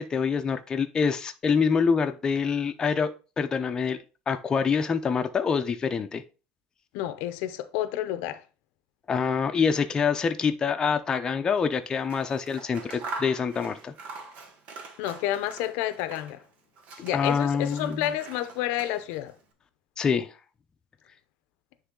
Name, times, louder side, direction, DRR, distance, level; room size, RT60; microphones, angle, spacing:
voice 1, 0.0-4.0 4.3-6.2 9.1-13.9 17.1-18.0 20.0-20.3, left 6 dB, 25° left, 0.6 m, -26 dB
voice 2, 6.9-8.4 15.0-16.4 17.0-19.3, left 13 dB, 80° left, 0.7 m, -30 dB
Scissors, 11.9-16.5 16.8-19.3, right 3 dB, 50° right, 1.4 m, -43 dB
9.9 x 3.3 x 3.8 m
cardioid pair, 135°, 3 cm